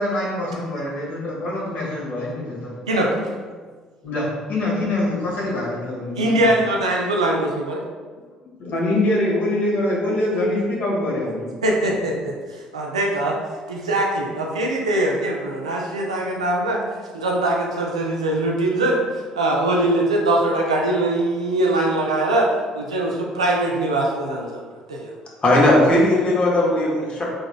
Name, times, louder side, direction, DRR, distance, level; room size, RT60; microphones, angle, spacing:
voice 1, 0.0-2.7 4.0-6.5 8.6-11.5, left 1 dB, 55° left, -4 dB, 1.5 m, -24 dB
voice 2, 2.9-3.5 6.2-7.8 11.6-13.4 13.7-16.8 17.1-22.5 22.7-24.6 24.9-25.1, right 1 dB, 85° right, -1 dB, 0.5 m, -22 dB
voice 3, 25.4-27.2, left 1 dB, 35° left, -4 dB, 1.5 m, -17 dB
4.8 x 4.0 x 2.2 m, 1.5 s
figure-of-eight pair, 50°, 3 cm